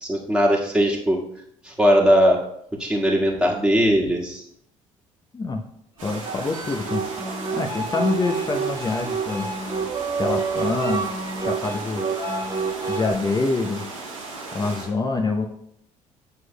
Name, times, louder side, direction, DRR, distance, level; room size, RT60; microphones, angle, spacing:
voice 1, 0.0-1.2 1.6-2.4 2.8-4.4, equal, 5° right, -3 dB, 1.6 m, -19 dB
voice 2, 6.0-7.3 7.5-9.5 10.1-11.1 11.4-12.1 12.9-13.9 14.5-15.5, left 3 dB, 25° left, 2 dB, 0.7 m, -26 dB
sound 1, 6.0-14.9, right 3 dB, 85° right, 1.3 m, -36 dB
sound 2, 6.1-13.2, right 4 dB, 25° right, 1.6 m, -28 dB
9.5 x 6.2 x 2.2 m, 0.72 s
figure-of-eight pair, 50°, 17 cm